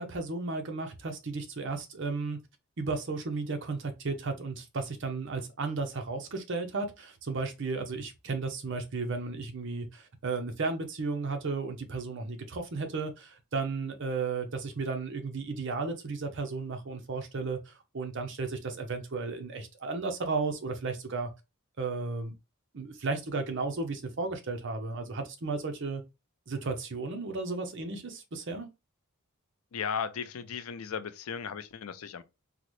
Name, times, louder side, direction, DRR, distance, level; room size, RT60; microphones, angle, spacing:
voice 1, 0.0-2.4 2.8-21.3 21.8-22.3 22.7-26.0 26.5-28.7, right 3 dB, 55° right, 0.6 m, -34 dB
voice 2, 29.7-32.2, left 7 dB, 75° left, 0.4 m, -36 dB
3.8 x 2.0 x 3.0 m
head